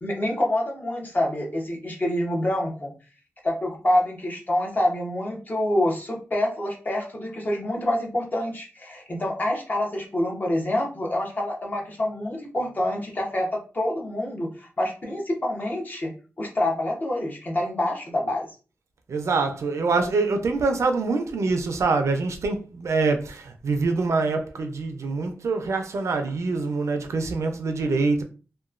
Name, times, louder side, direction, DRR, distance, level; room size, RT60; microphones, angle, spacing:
voice 1, 0.0-2.9 3.4-16.1 16.4-18.5, left 1 dB, 35° left, 0.9 m, -26 dB
voice 2, 19.1-28.2, right 3 dB, 75° right, 0.5 m, -25 dB
2.9 x 2.2 x 2.4 m
wide cardioid pair, 85°, 5 cm